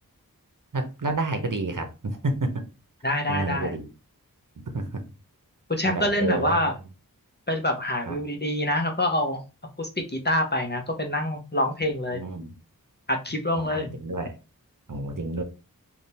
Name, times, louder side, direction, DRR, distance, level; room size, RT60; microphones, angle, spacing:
voice 1, 0.7-2.6 3.3-3.9 4.7-5.0 5.8-6.6 8.1-8.2 12.1-12.5 13.6-14.4 14.9-15.4, right 2 dB, 60° right, 6 dB, 0.9 m, -29 dB
voice 2, 3.0-3.7 5.7-6.7 7.5-9.4 9.8-12.2 13.1-13.9, left 1 dB, 30° left, 3 dB, 0.8 m, -26 dB
3.6 x 2.4 x 4.2 m, 0.30 s
wide cardioid pair, 45°, 36 cm